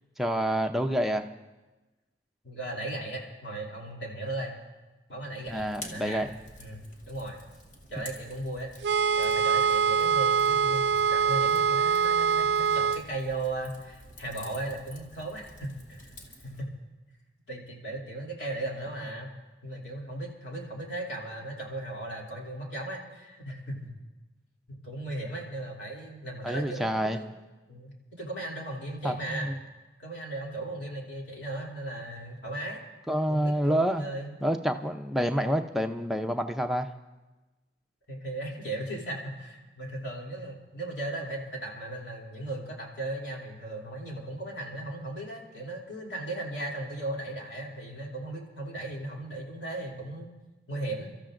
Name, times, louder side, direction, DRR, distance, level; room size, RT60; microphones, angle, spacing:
voice 1, 0.2-1.3 5.5-6.3 26.4-27.2 29.0-29.5 33.1-34.0 34.4-36.9, equal, ahead, 4 dB, 0.6 m, -28 dB
voice 2, 2.4-4.6 5.1-6.2 6.6-7.4 7.9-8.7 9.2-16.1 16.4-16.7 17.5-19.3 19.6-23.9 24.7-27.4 27.7-29.5 30.0-32.8 33.3-34.4 38.1-50.3 50.7-51.1, right 1 dB, 70° left, -2 dB, 2.9 m, -37 dB
Fire, 5.5-16.6, left 1 dB, 45° left, 2.0 m, -49 dB
sound 1, 8.8-13.0, right 6 dB, 70° right, 0.4 m, -24 dB
29.5 x 13.5 x 2.5 m, 1.1 s
head